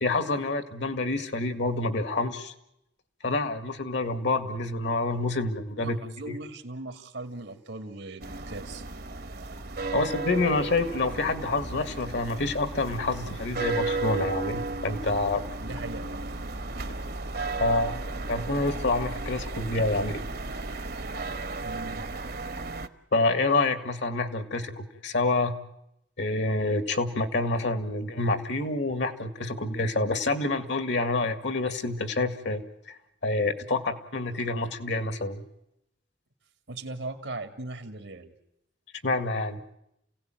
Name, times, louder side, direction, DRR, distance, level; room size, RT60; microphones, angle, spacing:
voice 1, 0.0-2.5 3.2-6.0 6.3-6.4 9.9-15.4 17.6-18.0 18.3-20.3 23.1-25.6 26.2-32.6 33.2-35.4 39.0-39.6, left 2 dB, 70° left, 10 dB, 2.1 m, -27 dB
voice 2, 5.7-8.8 15.6-16.5 21.6-22.1 36.7-38.3, right 2 dB, 90° right, 6 dB, 2.3 m, -39 dB
sound 1, 8.2-22.9, right 3 dB, 60° right, 1.2 m, -34 dB
29.0 x 17.0 x 9.1 m, 0.83 s
head